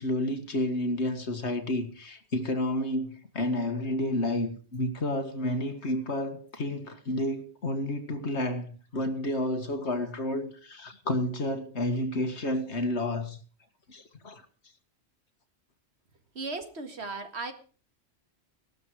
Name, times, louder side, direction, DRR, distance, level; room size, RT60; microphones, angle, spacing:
voice 1, 0.0-13.4 13.9-14.4, left 1 dB, 70° left, 2.0 m, -30 dB
voice 2, 16.3-17.5, right 3 dB, 65° right, 2.1 m, -36 dB
17.0 x 12.5 x 4.8 m
omnidirectional pair, 1.2 m